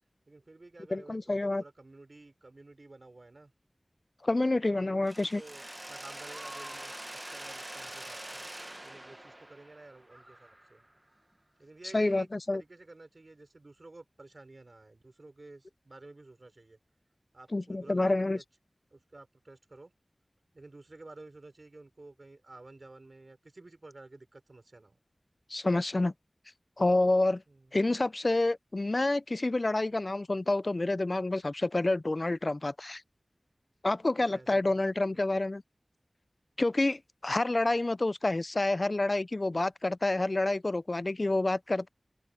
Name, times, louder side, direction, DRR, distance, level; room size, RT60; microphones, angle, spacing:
voice 1, 0.3-3.5 4.5-6.9 7.3-8.5 8.8-10.8 11.6-16.8 17.3-18.4 18.9-19.9 20.5-25.0 27.5-27.7 34.2-34.8, right 2 dB, 60° right, 5.8 m, -52 dB
voice 2, 0.9-1.6 4.2-5.4 11.9-12.6 17.5-18.4 25.5-26.1 26.8-27.4 27.7-33.0 33.8-35.6 36.6-41.9, left 2 dB, 50° left, 0.4 m, -28 dB
Mechanisms, 5.1-10.9, right 1 dB, 25° right, 0.9 m, -44 dB
open air
wide cardioid pair, 45°, 0 cm